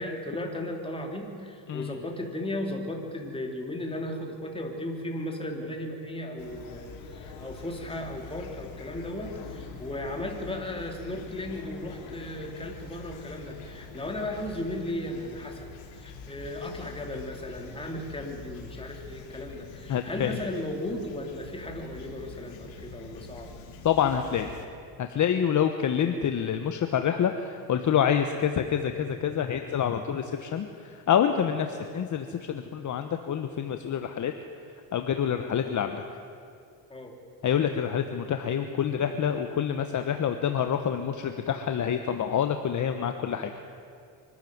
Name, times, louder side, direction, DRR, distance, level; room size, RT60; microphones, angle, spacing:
voice 1, 0.0-23.5 36.9-37.1, left 1 dB, 10° left, 1 dB, 3.3 m, -36 dB
Fowl / Chirp tweet, 6.4-24.7, left 4 dB, 80° left, 3.5 m, -44 dB
voice 2, 19.9-20.4 23.8-24.5 25.0-30.7 30.9-34.3 34.9-36.0 37.4-43.5, left 8 dB, 40° left, 7 dB, 1.2 m, -27 dB
24.5 x 12.5 x 9.5 m, 2.4 s
cardioid pair, 110°, 46 cm